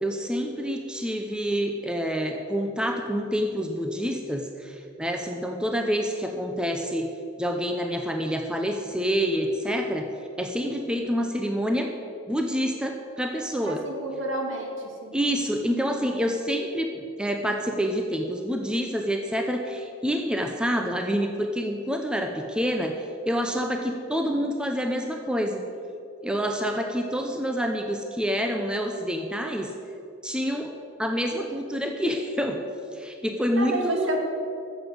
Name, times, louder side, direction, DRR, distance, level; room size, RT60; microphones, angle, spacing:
voice 1, 0.0-7.1 7.4-10.1 10.4-11.9 12.3-13.9 15.1-25.6 26.2-29.7 30.2-30.7 31.0-32.6 32.9-34.1, equal, 5° right, 3 dB, 0.7 m, -27 dB
voice 2, 13.6-14.7 15.0-15.1 33.6-34.2, right 2 dB, 70° right, 1 dB, 2.3 m, -30 dB
14.0 x 7.2 x 8.0 m, 2.6 s
head